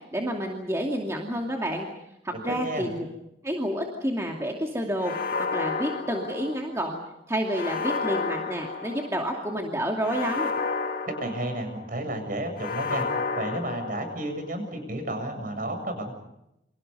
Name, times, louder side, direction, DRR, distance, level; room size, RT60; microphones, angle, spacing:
voice 1, 0.0-1.9 2.2-3.1 3.4-5.1 5.5-7.0 7.3-10.5, equal, 15° right, 0 dB, 2.5 m, -29 dB
voice 2, 2.3-2.9 11.0-13.0 13.3-16.1, right 1 dB, 45° right, 6 dB, 7.7 m, -32 dB
ominous bin lid, 5.0-6.9 7.5-9.3 10.0-11.9 12.6-14.4, left 4 dB, 50° left, 2.3 m, -31 dB
29.5 x 26.5 x 5.5 m, 0.84 s
head